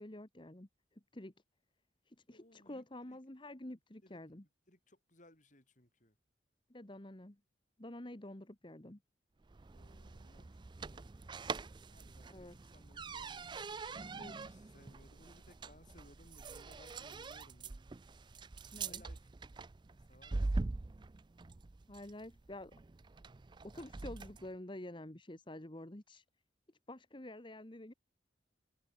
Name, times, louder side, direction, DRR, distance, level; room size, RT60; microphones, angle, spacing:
voice 1, 0.0-1.3 2.1-4.4 6.7-7.4 7.8-9.0 12.3-12.7 14.9-15.0 18.7-19.0 21.9-22.7 23.6-26.2 26.9-27.9, left 1 dB, 25° left, 1.5 m, -49 dB
voice 2, 2.3-2.8 4.0-4.2 4.7-4.8 5.1-6.1 9.7-10.5 10.8-11.4 11.9-12.2 12.7-13.7 13.9-17.7 18.8-19.2 20.1-20.7, left 1 dB, 45° left, 7.6 m, -62 dB
sound 1, 9.4-24.5, right 3 dB, 25° right, 0.4 m, -44 dB
head